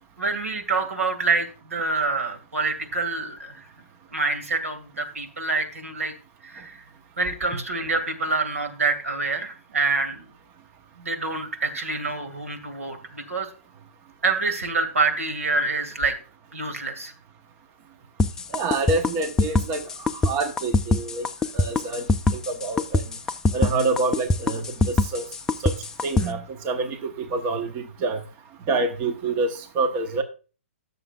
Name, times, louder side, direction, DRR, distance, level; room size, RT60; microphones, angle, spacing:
voice 1, 0.2-3.6 4.1-6.1 6.4-6.8 7.2-10.2 11.0-13.5 14.2-16.2 16.5-17.1, right 3 dB, 90° right, 7 dB, 2.1 m, -26 dB
sound 1, 18.2-26.3, left 2 dB, 10° left, 0.4 m, -23 dB
voice 2, 18.5-21.2 21.5-22.0 22.3-23.0 23.5-25.2 25.6-25.7 26.0-28.2 28.7-30.2, right 3 dB, 25° right, 7 dB, 1.0 m, -27 dB
16.5 x 6.8 x 2.4 m, 0.36 s
hypercardioid pair, 145°, 7 cm